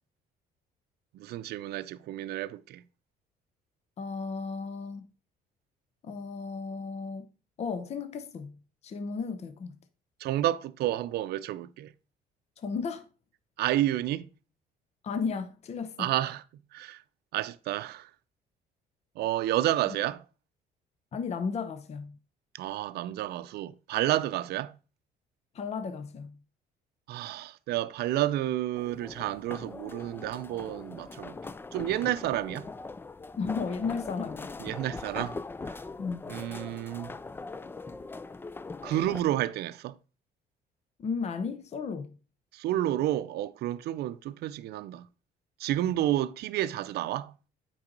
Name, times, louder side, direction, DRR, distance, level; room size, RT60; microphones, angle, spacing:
voice 1, 1.1-2.8 10.2-11.9 13.6-14.3 16.0-16.4 16.7-17.0 17.3-18.1 19.2-20.2 22.5-24.7 27.1-31.3 31.7-32.7 34.6-35.4 35.6-35.8 36.3-37.2 38.8-40.0 42.5-45.1 45.6-47.3, right 13 dB, 70° right, 0.5 m, -30 dB
voice 2, 4.0-5.1 6.0-7.3 7.6-8.6 8.8-9.8 12.6-13.1 15.0-16.1 21.1-22.2 25.5-26.4 33.4-34.5 36.0-36.3 41.0-42.1, left 5 dB, 40° left, 0.8 m, -34 dB
sound 1, 28.7-39.2, left 3 dB, 15° left, 0.3 m, -41 dB
8.7 x 5.5 x 3.9 m
cardioid pair, 110°, 17 cm